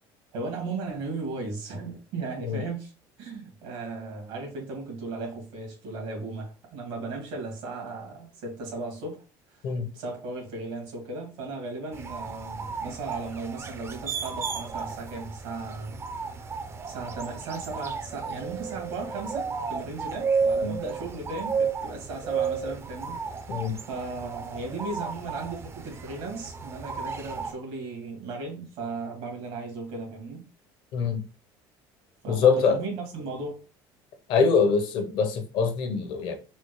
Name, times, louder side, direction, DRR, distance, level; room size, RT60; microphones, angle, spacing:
voice 1, 0.3-2.9 3.2-9.2 9.5-16.0 16.8-23.5 23.9-30.4 32.2-33.6, right 3 dB, 80° right, 1.8 m, -36 dB
sound 1, 11.9-27.5, right 5 dB, 25° right, 0.4 m, -33 dB
voice 2, 30.9-31.2 32.3-32.8 34.3-36.3, left 5 dB, 65° left, 0.8 m, -24 dB
4.2 x 2.1 x 3.0 m
cardioid pair, 110°, 9 cm